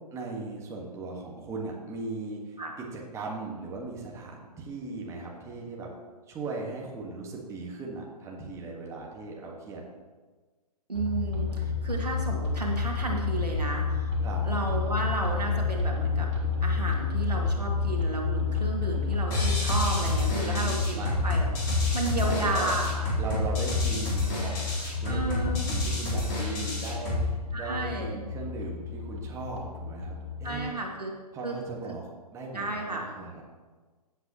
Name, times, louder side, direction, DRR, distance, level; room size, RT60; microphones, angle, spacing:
voice 1, 0.1-5.9 6.3-9.8 14.2-14.4 20.3-21.1 22.2-22.7 23.1-24.6 24.9-30.8 31.3-32.1 32.3-33.4, right 3 dB, 15° right, -2 dB, 1.6 m, -38 dB
sound 1, 10.9-30.6, left 5 dB, 45° right, 2.6 m, -30 dB
voice 2, 10.9-14.1 14.4-16.3 16.6-23.0 25.0-25.6 27.5-28.2 30.4-31.1 31.4-31.6 32.5-33.1, right 2 dB, 85° right, 0 dB, 2.2 m, -32 dB
sound 2, 19.3-27.3, left 1 dB, 30° left, 3.8 m, -30 dB
15.5 x 8.2 x 3.1 m, 1.3 s
figure-of-eight pair, 125°, 20 cm